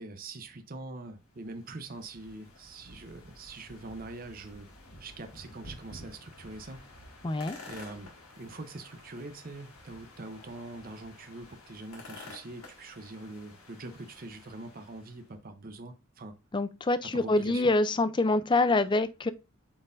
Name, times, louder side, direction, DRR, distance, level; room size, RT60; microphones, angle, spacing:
voice 1, 0.0-4.7 5.0-6.8 7.7-16.4 17.0-17.6, right 2 dB, 40° right, 0.7 m, -43 dB
sound 1, 1.2-15.3, left 2 dB, 90° left, 1.9 m, -51 dB
voice 2, 7.2-7.6 16.5-19.3, left 2 dB, 20° left, 0.4 m, -26 dB
8.7 x 4.3 x 2.5 m
head